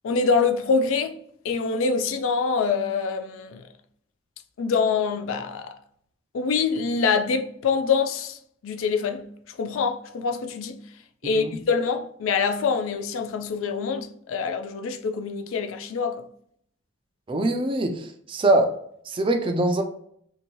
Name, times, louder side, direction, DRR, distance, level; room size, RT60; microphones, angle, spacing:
voice 1, 0.0-1.2 1.4-3.6 4.6-5.8 6.3-8.4 8.6-9.3 9.6-10.8 11.2-16.2, left 5 dB, 85° left, 0.3 m, -25 dB
voice 2, 11.2-11.6 17.3-18.8 19.1-19.8, right 2 dB, 25° right, 0.3 m, -23 dB
2.7 x 2.6 x 2.9 m
head